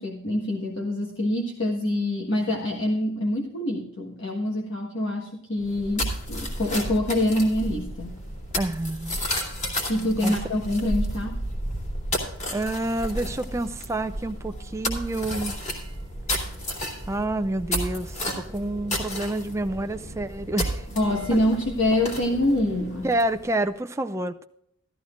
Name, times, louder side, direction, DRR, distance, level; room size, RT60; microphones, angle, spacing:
voice 1, 0.0-8.2 9.9-11.4 20.9-23.1, left 1 dB, 60° left, -2 dB, 1.5 m, -25 dB
sound 1, 5.6-23.5, equal, 35° left, 2.7 m, -32 dB
voice 2, 8.6-9.2 10.2-10.3 12.5-15.5 17.1-20.9 21.3-21.4 23.0-24.4, right 1 dB, 15° right, 8 dB, 0.4 m, -28 dB
13.5 x 13.5 x 2.5 m, 0.72 s
head